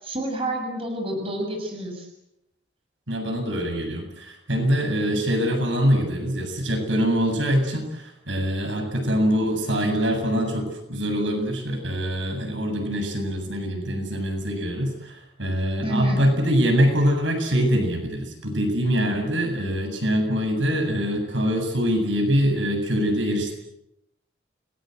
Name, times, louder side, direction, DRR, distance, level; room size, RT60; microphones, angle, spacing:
voice 1, 0.0-2.1 15.8-16.3, right 1 dB, 30° right, 2 dB, 6.6 m, -29 dB
voice 2, 3.1-23.5, equal, 85° right, 4 dB, 7.7 m, -24 dB
30.0 x 21.0 x 8.0 m, 0.82 s
head